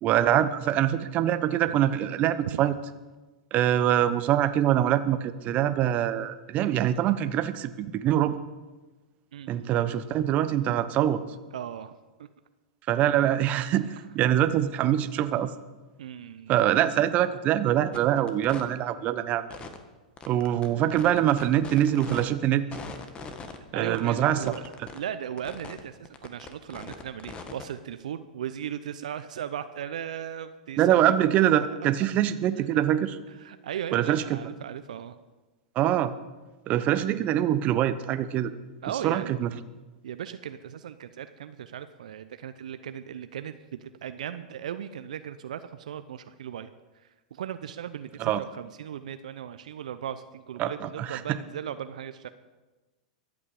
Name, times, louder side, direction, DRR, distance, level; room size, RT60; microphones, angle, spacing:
voice 1, 0.0-2.7 3.5-8.4 9.5-11.2 12.9-13.9 14.1-15.5 16.5-19.5 20.3-22.7 23.7-24.4 30.8-33.2 33.9-34.4 35.8-36.1 36.7-38.5 39.0-39.5 48.2-48.4 50.6-51.2, right 11 dB, 35° right, 12 dB, 0.9 m, -24 dB
voice 2, 9.3-9.9 11.5-11.9 12.2-12.3 16.0-16.6 23.7-24.7 24.9-31.0 32.6-32.7 33.3-35.2 38.8-39.3 40.0-52.3, right 9 dB, 70° right, 11 dB, 0.7 m, -37 dB
sound 1, 17.9-18.0 18.3-18.6 19.5-19.8 20.2-22.2 22.7-23.6 23.9-25.0 25.4-25.8 26.0-27.6, left 5 dB, 25° left, 1.6 m, -41 dB
23.5 x 8.6 x 4.9 m, 1.2 s
figure-of-eight pair, 100°, 4 cm